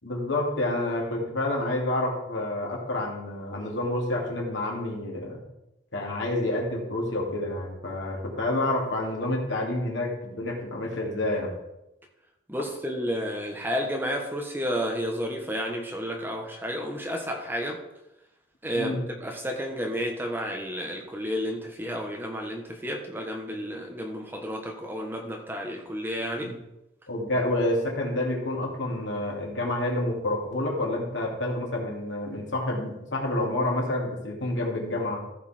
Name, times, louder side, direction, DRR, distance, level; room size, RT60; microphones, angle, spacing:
voice 1, 0.0-5.4 5.9-11.5 18.7-19.0 26.4-26.5 27.1-35.2, left 1 dB, 80° left, -1 dB, 2.7 m, -28 dB
voice 2, 12.5-17.8 18.6-26.6, equal, 10° right, 1 dB, 1.2 m, -31 dB
14.5 x 5.7 x 4.4 m, 0.88 s
head